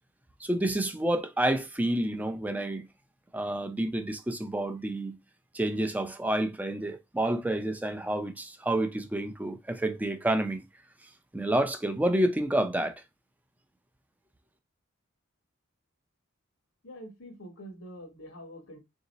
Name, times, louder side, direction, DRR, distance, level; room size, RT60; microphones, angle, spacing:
voice 1, 0.4-2.9 3.3-5.2 5.5-10.6 11.3-12.9, right 1 dB, 10° right, 0.4 m, -29 dB
voice 2, 16.8-18.8, equal, 80° left, 1.2 m, -45 dB
3.7 x 2.7 x 4.0 m
head